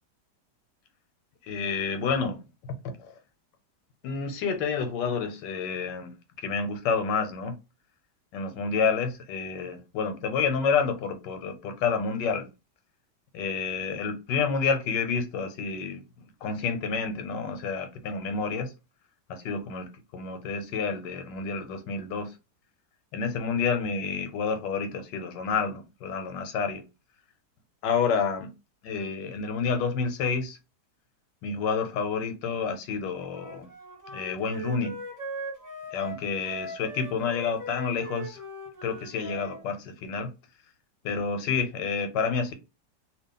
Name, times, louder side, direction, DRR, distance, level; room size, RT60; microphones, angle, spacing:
voice 1, 1.4-2.4 2.8-3.1 4.0-6.1 6.4-7.5 8.3-12.5 13.3-16.0 16.4-18.7 19.3-19.9 20.1-22.3 23.1-26.8 27.8-28.5 28.8-30.6 31.4-33.7 34.1-35.0 35.9-38.4 38.8-40.3 41.0-42.5, left 5 dB, 90° left, 1.3 m, -29 dB
Wind instrument woodwind instrument, 33.3-39.6, equal, 15° right, 0.9 m, -40 dB
2.8 x 2.4 x 3.7 m
omnidirectional pair, 1.9 m